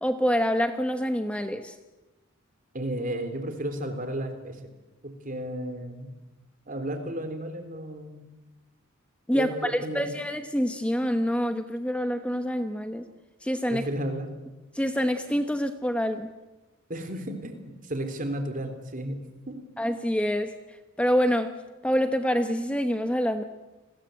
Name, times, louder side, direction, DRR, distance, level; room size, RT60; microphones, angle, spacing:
voice 1, 0.0-1.7 9.3-13.0 13.4-13.8 14.7-16.3 19.8-20.6 21.0-21.5 21.8-23.4, equal, 5° left, 7 dB, 1.0 m, -26 dB
voice 2, 2.7-4.6 5.0-6.1 6.7-8.2 9.3-10.1 13.7-14.3 16.9-19.2 19.5-19.6, right 1 dB, 40° right, 6 dB, 3.6 m, -33 dB
30.0 x 21.5 x 7.9 m, 1.1 s
head